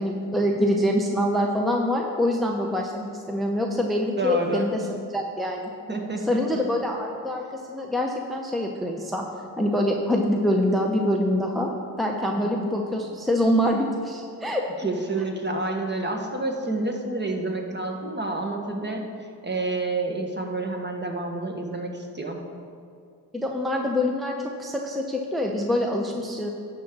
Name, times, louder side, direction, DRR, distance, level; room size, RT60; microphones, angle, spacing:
voice 1, 0.0-5.7 6.2-9.3 9.6-14.6 23.3-26.5, left 1 dB, ahead, 1 dB, 0.8 m, -25 dB
voice 2, 4.2-4.7 5.9-6.6 12.4-12.5 14.8-19.0 19.4-22.4, right 2 dB, 25° right, 2 dB, 1.4 m, -29 dB
11.0 x 3.8 x 7.3 m, 2.4 s
cardioid pair, 65°, 40 cm